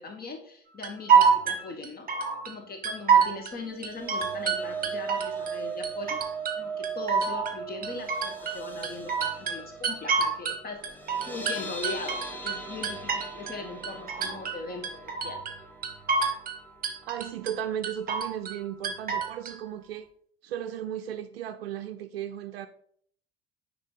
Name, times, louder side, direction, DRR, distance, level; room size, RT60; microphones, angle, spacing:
voice 1, 0.0-2.1 2.4-6.2 6.6-11.0 11.3-14.9 15.2-15.4, left 3 dB, 30° left, 1.2 m, -39 dB
sound 1, 0.8-2.5 2.8-3.5 3.8-5.5 5.8-6.6 6.8-10.6 10.8-13.6 13.8-14.6 14.8-15.6 15.8-16.6 16.8-17.5 17.8-18.6 18.8-19.5, right 6 dB, 30° right, 1.2 m, -26 dB
sound 2, 3.5-17.7 18.1-18.3 18.6-18.7, right 5 dB, 5° left, 1.0 m, -39 dB
voice 2, 17.0-20.1 20.4-22.7, right 10 dB, 75° right, 0.5 m, -35 dB
9.6 x 3.5 x 3.9 m
figure-of-eight pair, 60°, 30 cm